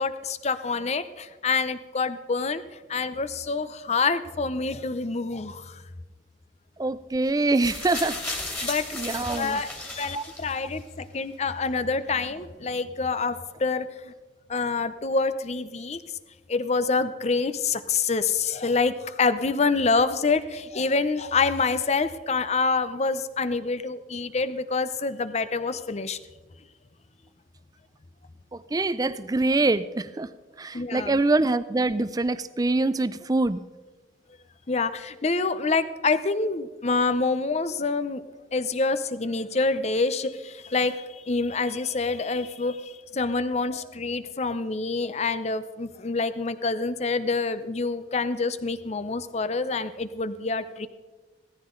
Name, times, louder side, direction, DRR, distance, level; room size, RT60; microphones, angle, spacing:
voice 1, 0.0-5.8 8.6-8.9 9.4-14.1 14.5-16.0 16.5-26.2 30.7-31.2 34.7-38.2 38.5-50.9, left 4 dB, 40° left, 12 dB, 0.7 m, -27 dB
voice 2, 6.8-8.2 8.6-9.6 10.1-10.2 28.5-30.3 30.6-33.6, right 2 dB, 20° right, 15 dB, 0.4 m, -25 dB
sound 1, 7.5-10.8 11.7-11.8, left 2 dB, 10° left, 2.6 m, -35 dB
17.0 x 14.0 x 3.8 m, 1.2 s
head